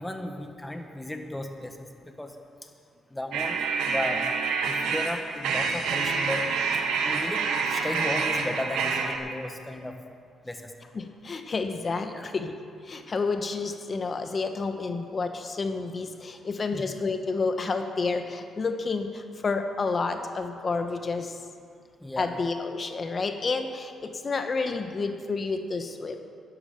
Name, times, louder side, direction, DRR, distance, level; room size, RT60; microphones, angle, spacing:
voice 1, 0.0-1.8 2.0-2.3 2.6-2.7 3.1-4.2 4.6-6.5 6.7-10.0 10.4-10.7 12.0-12.3 16.7-16.9 22.0-22.4, left 1 dB, 10° left, 4 dB, 1.5 m, -35 dB
sound 1, 3.3-9.2, right 5 dB, 85° right, 1.3 m, -27 dB
voice 2, 10.9-12.5 12.9-19.1 19.4-21.3 22.2-26.1, left 4 dB, 40° left, 6 dB, 1.2 m, -30 dB
11.0 x 11.0 x 6.9 m, 2.2 s
cardioid pair, 90°, 0 cm